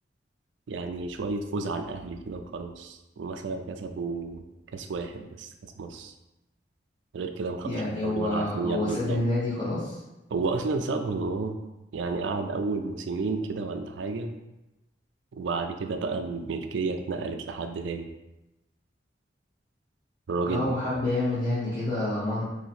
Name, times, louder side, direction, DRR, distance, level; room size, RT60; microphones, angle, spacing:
voice 1, 0.7-4.4 4.7-6.1 7.1-9.2 10.3-11.6 11.9-14.4 15.3-18.1 20.3-20.8, right 3 dB, 90° right, 7 dB, 0.4 m, -31 dB
voice 2, 7.6-10.0 20.4-22.4, left 2 dB, 25° left, -9 dB, 0.8 m, -28 dB
2.8 x 2.7 x 4.2 m, 0.99 s
head